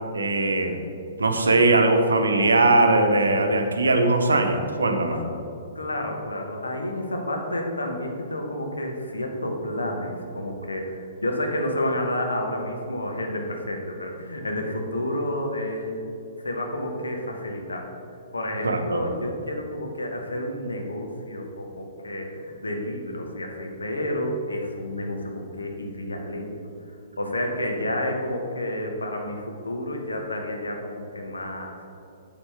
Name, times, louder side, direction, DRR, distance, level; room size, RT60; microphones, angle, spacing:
voice 1, 0.1-0.8 1.2-5.2 18.6-19.0, right 2 dB, 70° right, 5 dB, 0.7 m, -20 dB
voice 2, 5.7-16.0 16.4-17.9 18.3-26.5 27.2-31.7, left 1 dB, 75° left, 2 dB, 1.1 m, -30 dB
7.3 x 7.0 x 3.4 m, 2.7 s
figure-of-eight pair, 115°, 0 cm